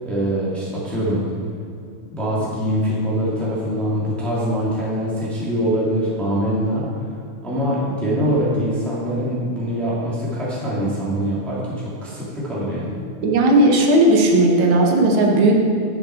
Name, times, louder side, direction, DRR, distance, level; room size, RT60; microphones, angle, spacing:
voice 1, 0.0-1.2 2.1-6.8 7.4-12.9, equal, ahead, -7 dB, 1.6 m, -23 dB
voice 2, 13.2-15.5, right 1 dB, 65° right, 1 dB, 1.4 m, -15 dB
11.0 x 7.0 x 4.4 m, 2.5 s
omnidirectional pair, 3.4 m